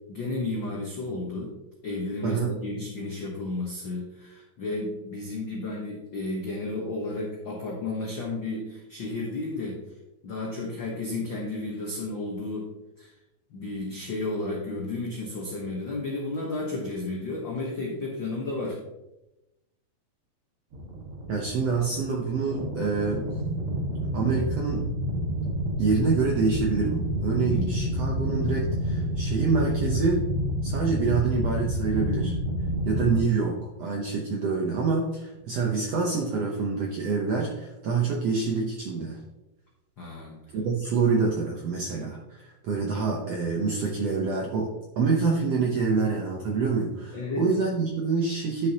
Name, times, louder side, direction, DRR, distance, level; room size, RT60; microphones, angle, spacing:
voice 1, 0.1-1.5 1.8-9.8 10.2-12.7 13.0-13.1 13.5-18.8 27.5-27.8 40.0-40.4 47.1-47.5, left 2 dB, 85° left, -2 dB, 1.0 m, -32 dB
voice 2, 2.2-2.6 21.3-23.3 24.1-24.9 25.8-30.3 30.6-32.3 32.9-39.2 40.5-44.7 45.0-48.7, right 4 dB, 75° right, 0 dB, 1.5 m, -26 dB
sound 1, 20.7-33.2, equal, 45° right, 2.1 m, -29 dB
10.5 x 6.7 x 2.9 m, 0.96 s
omnidirectional pair, 4.1 m